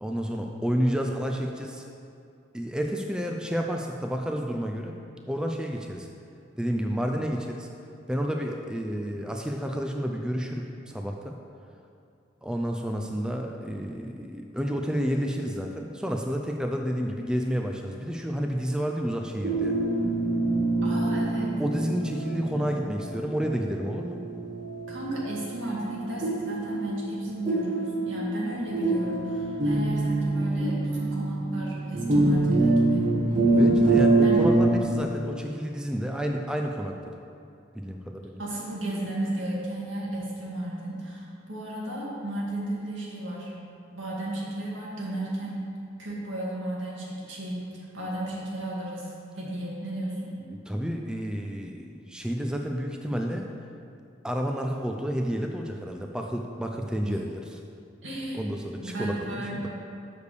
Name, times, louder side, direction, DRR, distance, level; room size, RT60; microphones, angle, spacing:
voice 1, 0.0-1.8 2.5-5.0 5.3-6.1 6.6-7.7 8.1-11.4 12.4-19.8 21.6-24.2 33.6-37.1 37.8-38.4 50.5-53.5 54.2-57.6 58.3-59.7, equal, 5° right, 2 dB, 0.3 m, -30 dB
sound 1, 19.4-34.7, right 2 dB, 40° right, 1.2 m, -25 dB
voice 2, 20.8-21.6 24.9-33.1 34.2-34.5 38.4-43.5 43.9-45.7 46.0-50.3 57.0-57.1 58.0-58.4 58.8-59.7, right 1 dB, 80° right, -5 dB, 2.0 m, -33 dB
6.7 x 5.1 x 6.5 m, 2.5 s
head